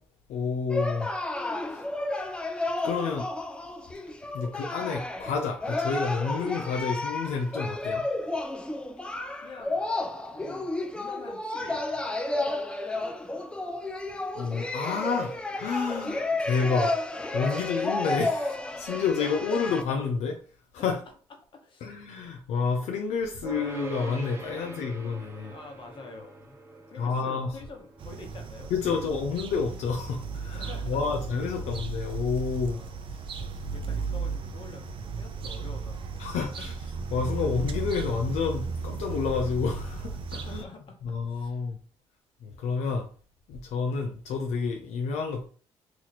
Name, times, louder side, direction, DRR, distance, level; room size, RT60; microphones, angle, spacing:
voice 1, 0.3-1.1 1.7-1.8 2.8-3.3 4.3-8.0 14.3-16.9 17.3-20.4 20.8-21.0 21.8-25.5 27.0-27.5 28.7-32.8 36.2-36.7 37.1-40.6 41.0-41.8 42.4-43.1 43.5-45.5, left 5 dB, 80° left, 2 dB, 0.5 m, -29 dB
sound 1, 0.7-19.8, left 2 dB, 10° left, 0.4 m, -32 dB
voice 2, 9.1-9.9 10.3-12.0 17.5-17.7 18.9-19.0 20.8-20.9 21.5-21.9 24.5-24.8 25.4-26.6 26.9-29.1 30.5-31.0 32.6-33.0 33.6-36.7 38.8-38.9 40.4-41.7, left 3 dB, 45° left, 3 dB, 1.1 m, -47 dB
sound 2, 23.4-34.7, right 3 dB, 25° right, 0.9 m, -46 dB
sound 3, 28.0-40.6, right 4 dB, 50° right, 0.6 m, -35 dB
2.9 x 2.5 x 4.1 m, 0.41 s
cardioid pair, 90°, 11 cm